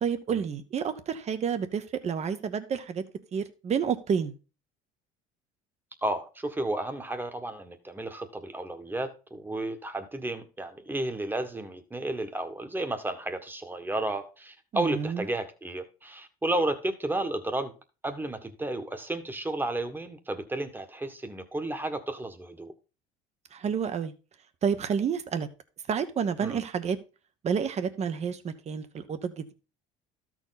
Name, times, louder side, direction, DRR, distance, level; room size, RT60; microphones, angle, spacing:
voice 1, 0.0-3.0 3.3-4.3 14.7-15.2 23.5-24.1 24.6-25.5 25.9-27.0 27.4-29.5, right 7 dB, 40° right, 1.2 m, -29 dB
voice 2, 6.0-17.7 18.0-22.7 26.4-26.6, right 2 dB, 10° right, 1.5 m, -32 dB
13.0 x 4.5 x 4.1 m
supercardioid pair, 95°, 17 cm